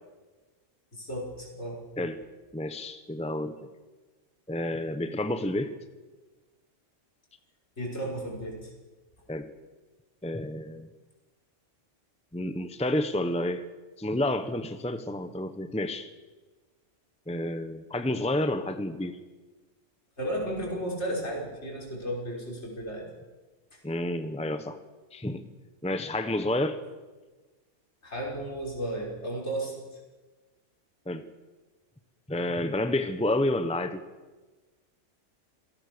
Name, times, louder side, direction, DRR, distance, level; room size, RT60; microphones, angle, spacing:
voice 1, 0.9-1.8 7.8-8.7 20.2-23.1 23.7-23.8 28.0-30.0, right 1 dB, 65° left, -2 dB, 5.8 m, -34 dB
voice 2, 2.5-3.7 4.5-5.7 9.3-9.5 10.2-10.9 12.3-13.6 14.0-16.1 17.3-19.2 23.8-24.8 25.1-25.4 25.8-26.8 31.1-31.2 32.3-34.0, left 1 dB, 5° left, 9 dB, 1.0 m, -30 dB
27.0 x 17.5 x 6.8 m, 1.3 s
omnidirectional pair, 1.3 m